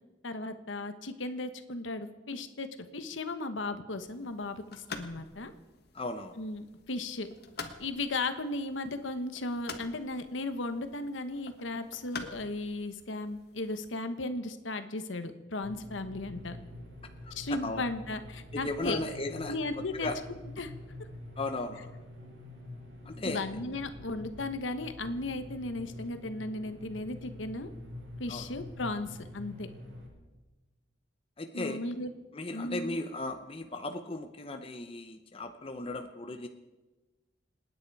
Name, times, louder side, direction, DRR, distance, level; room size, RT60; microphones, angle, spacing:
voice 1, 0.2-2.7 2.9-5.5 6.4-7.3 7.8-16.6 17.3-19.0 19.5-20.7 23.2-27.7 28.2-29.7 31.5-32.1 32.5-33.0, left 2 dB, 90° left, 9 dB, 1.2 m, -36 dB
sound 1, 4.0-13.9, left 4 dB, 55° left, 1.4 m, -48 dB
voice 2, 5.9-6.4 17.3-17.8 18.5-20.2 21.4-21.9 23.1-23.4 28.3-28.5 31.4-31.8 32.3-36.5, left 2 dB, 30° left, 6 dB, 0.8 m, -36 dB
sound 2, 15.6-30.1, left 1 dB, 85° right, 5.3 m, -46 dB
27.5 x 9.7 x 4.8 m, 1.1 s
head